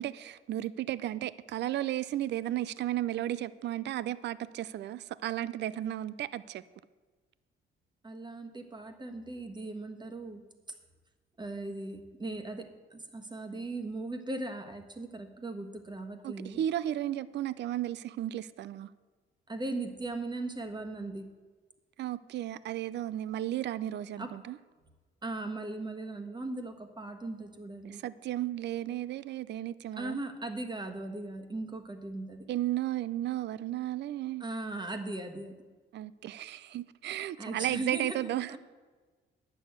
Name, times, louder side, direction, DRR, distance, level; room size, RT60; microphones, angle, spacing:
voice 1, 0.0-6.6 16.2-18.9 22.0-24.6 27.8-30.2 32.5-34.5 35.9-38.6, right 13 dB, 60° right, 17 dB, 0.4 m, -34 dB
voice 2, 8.0-10.4 11.4-16.6 19.5-21.3 24.2-24.4 25.2-28.0 30.0-32.5 34.4-35.6 37.4-38.6, right 2 dB, 20° right, 6 dB, 1.4 m, -38 dB
9.8 x 6.9 x 8.0 m, 1.4 s
cardioid pair, 90°, 20 cm